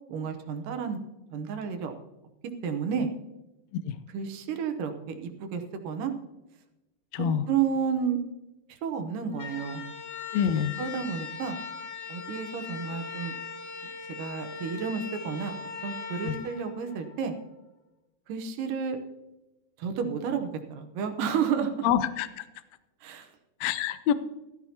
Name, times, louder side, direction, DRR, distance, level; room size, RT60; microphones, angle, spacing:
voice 1, 0.1-1.0 1.3-1.9 2.6-3.1 4.1-6.1 7.2-8.2 8.7-9.8 10.8-11.6 12.1-13.3 14.2-15.5 15.8-17.3 18.3-19.0 19.8-21.9 23.0-23.3 24.1-24.2, right 6 dB, 75° right, 6 dB, 2.5 m, -31 dB
voice 2, 7.1-7.4 10.3-10.7 16.2-16.4 21.8-22.4 23.6-24.1, left 9 dB, 90° left, 11 dB, 1.5 m, -26 dB
sound 1, 9.3-17.4, left 5 dB, 50° left, 2.9 m, -40 dB
15.5 x 13.0 x 2.8 m, 1.0 s
omnidirectional pair, 3.9 m